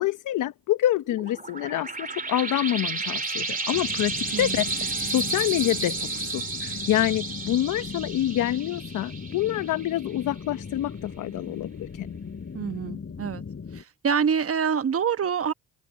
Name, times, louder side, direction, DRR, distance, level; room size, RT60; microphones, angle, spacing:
voice 1, 0.0-12.2, left 13 dB, 75° left, 1.0 m, -27 dB
sound 1, 1.1-10.3, right 3 dB, 25° right, 2.6 m, -32 dB
sound 2, 3.7-13.8, left 5 dB, 45° left, 6.0 m, -39 dB
voice 2, 4.3-4.6 12.5-13.4 13.7-15.5, right 7 dB, 45° right, 1.2 m, -26 dB
supercardioid pair, 60°, 31 cm